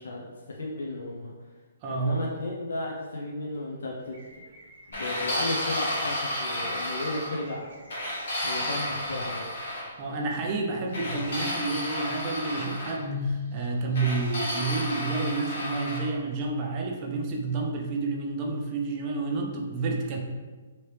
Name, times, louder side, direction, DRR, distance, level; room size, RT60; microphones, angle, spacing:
voice 1, 0.0-1.3 1.9-4.1 4.9-7.7 8.4-9.5, left 2 dB, 75° left, -2 dB, 0.5 m, -34 dB
voice 2, 1.8-2.2 10.0-20.2, right 3 dB, 20° right, 0 dB, 0.3 m, -30 dB
sound 1, 4.0-14.0, left 3 dB, 50° right, 0.6 m, -42 dB
sound 2, 4.9-7.4 7.9-9.8 10.9-13.0 13.9-16.1, left 1 dB, 55° left, 1.2 m, -32 dB
3.0 x 2.8 x 3.2 m, 1.3 s
hypercardioid pair, 180°, 0 cm